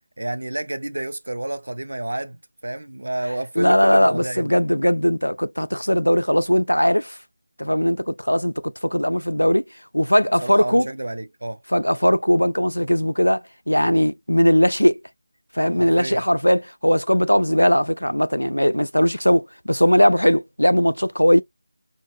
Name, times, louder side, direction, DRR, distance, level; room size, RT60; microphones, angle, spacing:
voice 1, 0.2-4.6 10.4-11.6 15.8-16.2, right 1 dB, 65° right, 0.4 m, -30 dB
voice 2, 3.6-7.2 7.6-9.7 9.9-10.9 11.7-15.0 15.5-21.4, equal, 90° left, 0.3 m, -19 dB
2.5 x 2.4 x 2.2 m
figure-of-eight pair, 165°, 0 cm